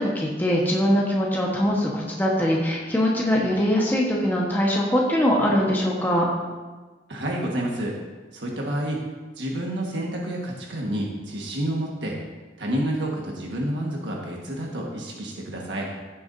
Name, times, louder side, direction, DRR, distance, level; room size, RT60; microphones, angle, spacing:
voice 1, 0.0-6.3, equal, 10° left, -4 dB, 1.2 m, -22 dB
voice 2, 7.1-8.0 8.3-9.0 9.4-12.2 12.6-15.9, right 1 dB, 90° right, -2 dB, 1.5 m, -29 dB
15.5 x 7.0 x 2.7 m, 1.3 s
head